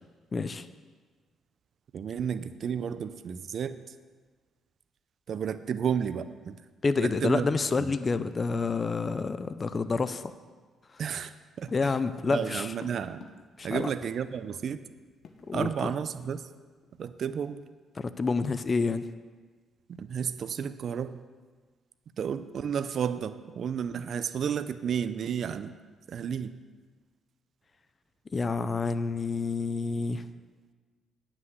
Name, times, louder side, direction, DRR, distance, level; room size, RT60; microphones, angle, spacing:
voice 1, 0.3-0.7 6.8-10.3 10.9-11.0 11.7-12.7 13.6-13.9 15.5-15.9 18.0-19.1 28.3-30.3, left 4 dB, 35° left, 12 dB, 0.5 m, -28 dB
voice 2, 1.9-3.8 5.3-6.6 7.0-7.5 7.8-7.9 11.0-12.0 12.2-13.2 13.6-14.8 15.5-16.4 17.0-17.6 20.0-21.2 22.2-25.7 26.1-26.5, right 7 dB, 60° right, 12 dB, 0.4 m, -32 dB
sound 1, 11.7-14.3 14.6-14.7 14.9-16.0 16.2-16.4 16.8-17.0, left 5 dB, 60° left, 1.0 m, -50 dB
9.4 x 5.9 x 7.9 m, 1.4 s
cardioid pair, 90°, 0 cm